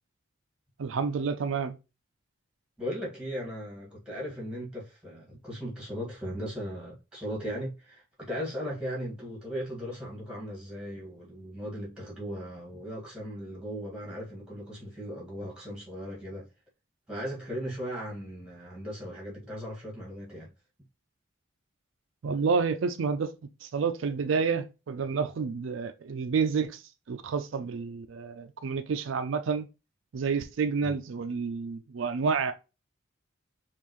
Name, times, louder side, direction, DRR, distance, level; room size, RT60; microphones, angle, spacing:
voice 1, 0.8-1.8 22.2-23.3 23.6-26.8 27.1-29.7 30.1-32.5, right 5 dB, 75° right, 0.4 m, -29 dB
voice 2, 2.8-16.5 17.1-20.5 30.8-30.9, equal, 5° right, 1.7 m, -37 dB
5.3 x 2.5 x 3.1 m
head